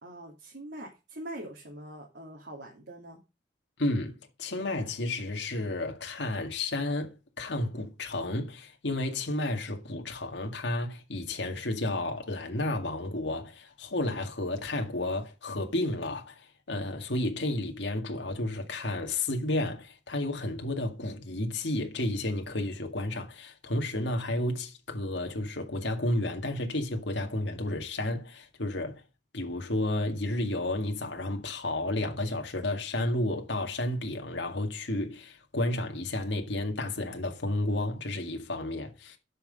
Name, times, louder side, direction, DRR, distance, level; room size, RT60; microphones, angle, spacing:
voice 1, 0.0-3.2, right 1 dB, 65° right, 2.7 m, -43 dB
voice 2, 3.8-29.0 29.3-39.2, left 1 dB, 75° left, 2.0 m, -32 dB
12.0 x 5.9 x 5.3 m
head